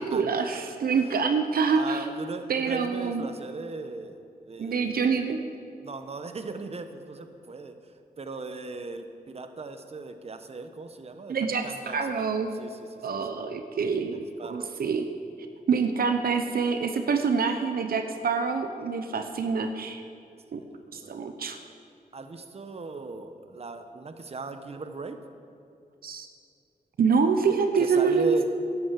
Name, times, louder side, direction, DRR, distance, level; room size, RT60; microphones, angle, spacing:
voice 1, 0.0-2.0 2.5-3.3 4.6-5.4 11.3-11.6 11.9-12.5 13.0-15.1 15.7-20.0 20.5-20.6 20.9-21.6 26.0-26.3 27.0-28.4, right 5 dB, 75° right, 7 dB, 0.8 m, -26 dB
voice 2, 0.7-1.2 1.7-4.2 4.5-5.2 5.8-7.7 8.2-11.4 11.6-13.4 14.0-14.7 20.7-21.2 22.1-25.2 27.5-28.4, right 3 dB, 40° right, 8 dB, 1.0 m, -38 dB
11.0 x 8.9 x 7.5 m, 2.5 s
cardioid pair, 80°, 15 cm